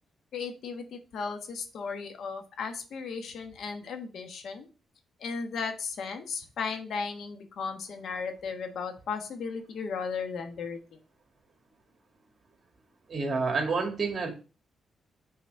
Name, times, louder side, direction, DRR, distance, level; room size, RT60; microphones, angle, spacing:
voice 1, 0.3-4.7 5.2-11.0, left 5 dB, 70° left, 6 dB, 1.2 m, -35 dB
voice 2, 13.1-14.3, right 4 dB, 45° right, 4 dB, 1.9 m, -28 dB
5.8 x 4.1 x 5.2 m, 0.35 s
cardioid pair, 85°, 0 cm